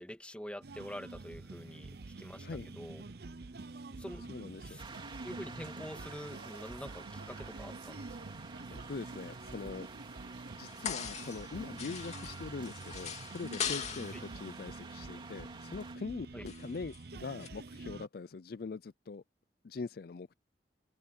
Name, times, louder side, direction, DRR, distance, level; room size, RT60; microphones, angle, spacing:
voice 1, 0.0-1.9 2.2-3.0 3.9-4.2 4.6-4.8 5.2-8.0 16.3-16.4, equal, 5° left, 1.7 m, -46 dB
sound 1, 0.6-18.1, right 3 dB, 60° right, 0.7 m, -47 dB
voice 2, 1.7-2.0 2.4-2.7 4.3-4.8 8.7-9.9 10.6-19.2 19.6-20.3, left 4 dB, 55° left, 0.4 m, -43 dB
windy pine forest (strong), 4.8-16.0, right 4 dB, 30° right, 3.1 m, -50 dB
sound 2, 10.6-11.5 11.8-14.3 16.5-17.0 17.4-17.5, left 7 dB, 40° left, 2.8 m, -40 dB
open air
head